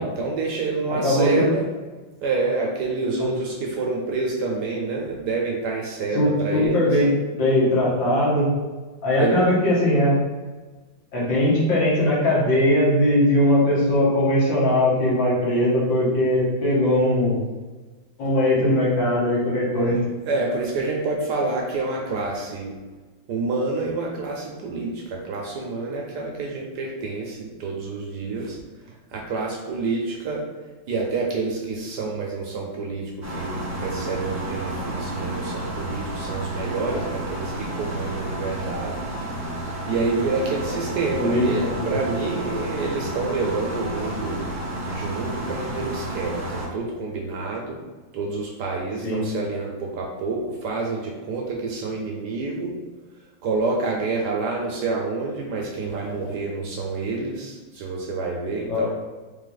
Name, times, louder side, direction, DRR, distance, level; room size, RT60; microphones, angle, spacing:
voice 1, 0.0-1.7 2.2-6.9 9.2-9.5 20.3-22.7 23.3-28.6 29.1-30.4 30.9-39.1 39.9-44.4 44.9-47.8 48.1-52.7 53.4-58.9, right 3 dB, 70° right, -1 dB, 1.1 m, -28 dB
voice 2, 1.0-1.5 6.1-7.1 7.4-8.5 9.0-10.2 11.1-17.4 18.2-20.0 41.2-41.9 49.0-49.2 58.7-58.9, left 1 dB, 70° left, -6 dB, 2.1 m, -20 dB
sound 1, 33.2-46.7, right 1 dB, 25° right, 0.3 m, -31 dB
4.0 x 3.2 x 3.9 m, 1.3 s
omnidirectional pair, 2.2 m